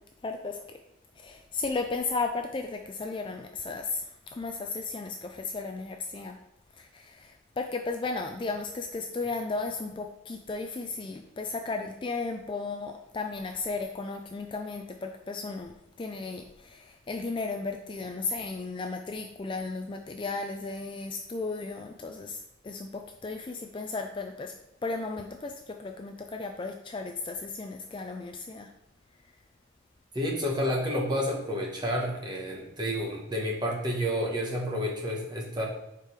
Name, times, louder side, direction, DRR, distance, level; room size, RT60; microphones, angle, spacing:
voice 1, 0.2-0.6 1.2-4.0 4.3-6.4 6.8-24.5 24.8-28.7, left 3 dB, 25° left, 4 dB, 0.3 m, -35 dB
voice 2, 30.1-35.6, equal, 20° right, -2 dB, 1.2 m, -30 dB
5.1 x 4.5 x 4.8 m, 0.83 s
head